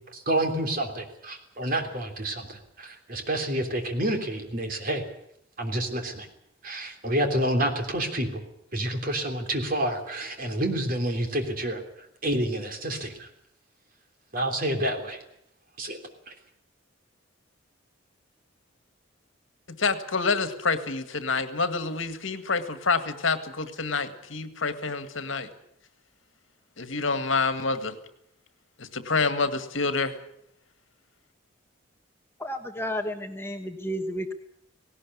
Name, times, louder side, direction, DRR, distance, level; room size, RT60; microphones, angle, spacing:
voice 1, 0.1-5.0 5.6-6.3 6.6-8.4 8.7-13.3 14.3-15.2 15.8-16.0 16.3-16.4, right 1 dB, 45° right, 5 dB, 3.4 m, -29 dB
voice 2, 19.8-25.5 26.8-28.0 28.8-30.2, left 4 dB, 75° left, 10 dB, 1.9 m, -27 dB
voice 3, 32.4-34.3, equal, 10° left, 4 dB, 1.2 m, -32 dB
18.5 x 18.0 x 9.6 m, 0.73 s
head